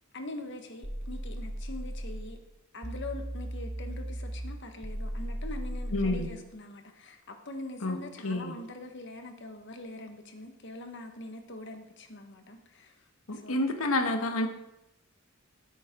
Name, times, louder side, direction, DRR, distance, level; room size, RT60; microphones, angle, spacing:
voice 1, 0.1-2.4 2.7-13.0 13.3-13.7, left 2 dB, 55° left, 5 dB, 1.5 m, -43 dB
sound 1, 0.8-2.3 2.8-6.3, equal, 20° right, 1.2 m, -36 dB
voice 2, 5.9-6.3 7.8-8.0 8.2-8.5 13.3-14.5, left 2 dB, 75° left, 5 dB, 1.4 m, -28 dB
15.0 x 8.7 x 3.8 m, 0.90 s
head